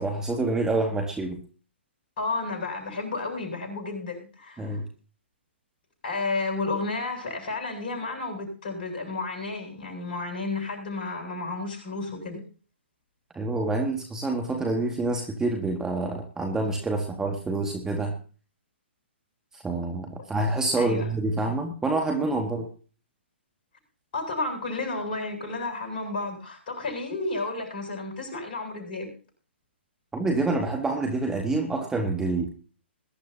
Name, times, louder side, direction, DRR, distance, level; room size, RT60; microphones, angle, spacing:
voice 1, 0.0-1.4 4.6-4.8 13.3-18.2 19.6-22.7 30.1-32.5, right 2 dB, 10° right, 3 dB, 1.8 m, -27 dB
voice 2, 2.2-4.8 6.0-12.4 20.8-21.1 24.1-29.1, left 3 dB, 50° left, 3 dB, 7.8 m, -32 dB
21.5 x 12.0 x 2.8 m, 0.37 s
figure-of-eight pair, 125°, 6 cm